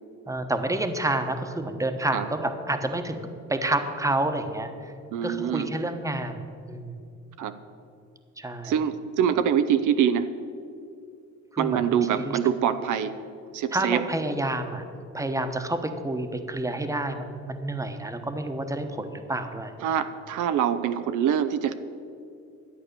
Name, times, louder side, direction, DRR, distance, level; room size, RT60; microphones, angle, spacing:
voice 1, 0.3-3.2 3.5-4.7 5.2-6.9 8.4-8.7 11.5-12.4 13.7-14.8 15.1-19.7, right 2 dB, 10° right, 7 dB, 1.1 m, -29 dB
voice 2, 5.1-5.7 7.4-7.6 8.6-10.3 11.6-13.1 13.5-14.1 19.8-21.7, right 9 dB, 80° right, 10 dB, 0.7 m, -24 dB
11.5 x 8.4 x 6.8 m, 2.5 s
cardioid pair, 90°, 30 cm